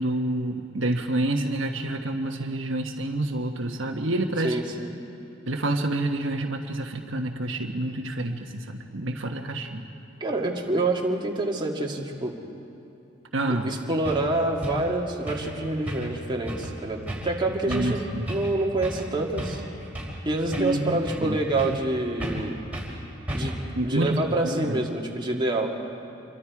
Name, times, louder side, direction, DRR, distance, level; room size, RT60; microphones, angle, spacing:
voice 1, 0.0-4.6 5.5-8.7 8.9-9.8 13.3-13.7 17.7-18.3 20.6-21.4 23.7-24.8, right 1 dB, 75° right, 3 dB, 1.3 m, -28 dB
voice 2, 4.4-4.9 10.2-12.3 13.5-18.0 18.3-19.6 20.3-22.6 23.3-23.6 23.8-25.8, right 2 dB, 25° right, -1 dB, 2.1 m, -27 dB
sound 1, 13.6-13.7 14.0-14.2 14.6-14.8 15.3-15.5 15.9-16.2 16.4-16.7 17.1-17.3 17.7-18.0 18.3-18.5 18.8-19.1 19.4-20.2 20.5-21.3 21.6-21.9 22.2-22.5 22.7-22.9 23.3-23.7, equal, 5° right, 4.6 m, -33 dB
27.0 x 23.5 x 4.8 m, 2.8 s
head